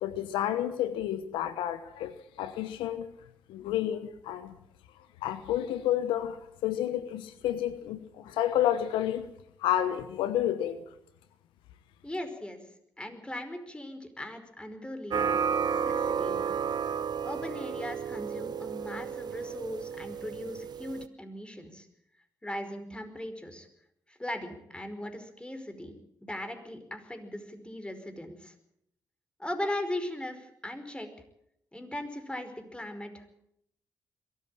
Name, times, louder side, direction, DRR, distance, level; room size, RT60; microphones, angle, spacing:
voice 1, 0.0-3.1 3.5-4.5 5.2-9.2 9.6-10.8, left 11 dB, 85° left, 13 dB, 1.1 m, -30 dB
voice 2, 12.0-12.6 13.0-16.6 17.2-21.9 22.4-23.7 24.1-28.5 29.4-31.1 31.7-33.3, left 1 dB, 10° left, 8 dB, 5.0 m, -39 dB
sound 1, 15.1-21.1, right 7 dB, 55° right, 0.8 m, -32 dB
22.5 x 14.0 x 8.9 m, 0.77 s
hypercardioid pair, 45°, 8 cm